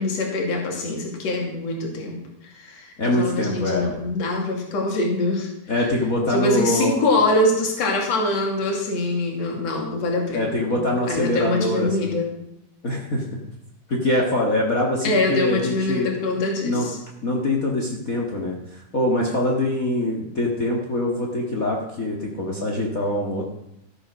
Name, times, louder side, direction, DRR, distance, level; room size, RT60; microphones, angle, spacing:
voice 1, 0.0-2.1 2.6-2.8 3.2-5.5 6.3-10.8 11.1-12.3 15.0-17.0, left 2 dB, 45° left, 1 dB, 3.4 m, -24 dB
voice 2, 3.0-4.0 5.7-7.0 10.3-12.1 12.8-13.3 13.9-16.1 16.6-16.9 17.2-23.4, left 1 dB, 85° left, -1 dB, 0.7 m, -24 dB
14.0 x 8.9 x 6.3 m, 0.81 s
omnidirectional pair, 4.6 m